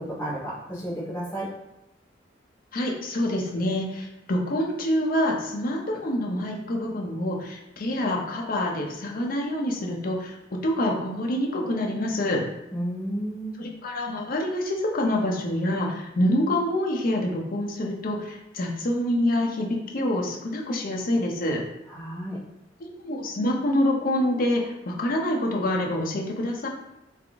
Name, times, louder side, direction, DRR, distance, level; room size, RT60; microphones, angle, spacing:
voice 1, 0.0-1.5 12.7-13.6 21.9-22.4, right 1 dB, 15° left, -12 dB, 1.1 m, -32 dB
voice 2, 2.7-12.4 13.6-21.6 22.8-26.7, left 1 dB, 50° left, 0 dB, 0.6 m, -26 dB
3.4 x 2.4 x 3.4 m, 0.89 s
head